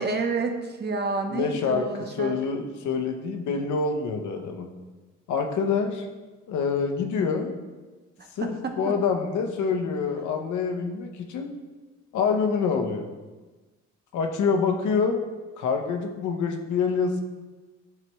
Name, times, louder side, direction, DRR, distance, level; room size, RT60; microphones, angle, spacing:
voice 1, 0.0-2.4 8.4-8.9, right 3 dB, 35° right, 4 dB, 0.7 m, -29 dB
voice 2, 1.3-4.7 5.3-6.1 6.5-7.5 8.4-11.6 12.1-13.1 14.1-15.2 15.6-17.2, left 5 dB, 75° left, 4 dB, 0.8 m, -26 dB
9.1 x 3.4 x 3.1 m, 1.2 s
cardioid pair, 90°, 30 cm